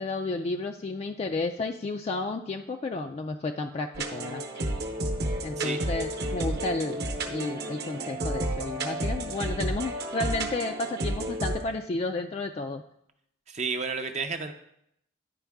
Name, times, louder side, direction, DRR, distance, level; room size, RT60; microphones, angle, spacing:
voice 1, 0.0-4.4 5.4-12.8, left 3 dB, 30° left, 5 dB, 0.3 m, -32 dB
sound 1, 3.9-11.6, right 1 dB, 55° right, 0.9 m, -31 dB
voice 2, 13.5-14.5, right 4 dB, 35° right, 6 dB, 0.5 m, -31 dB
10.0 x 4.5 x 3.5 m, 0.74 s
head